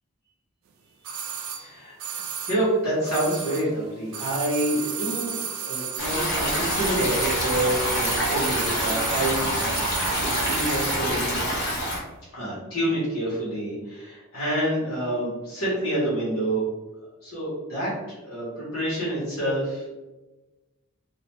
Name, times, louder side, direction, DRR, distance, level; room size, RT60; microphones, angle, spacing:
sound 1, 1.0-3.8 4.1-11.1 11.3-11.4, right 7 dB, 70° right, 0.3 m, -32 dB
voice 1, 1.6-9.8 10.2-11.6 12.3-16.6 17.2-19.9, right 1 dB, 75° left, -9 dB, 1.0 m, -28 dB
Stream, 6.0-12.0, equal, 50° left, 0.9 m, -26 dB
2.4 x 2.1 x 3.0 m, 1.1 s
head